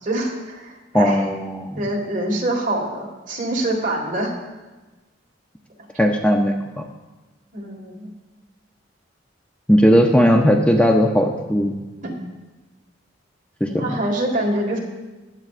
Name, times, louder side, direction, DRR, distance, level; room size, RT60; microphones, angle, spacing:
voice 1, 0.0-1.2 1.8-4.4 7.5-8.1 12.0-12.1 13.7-14.8, right 1 dB, 45° right, 0 dB, 1.7 m, -25 dB
voice 2, 0.9-1.8 6.0-6.8 9.7-11.7 13.6-13.9, equal, 5° left, 2 dB, 0.5 m, -17 dB
15.0 x 9.5 x 2.5 m, 1.2 s
head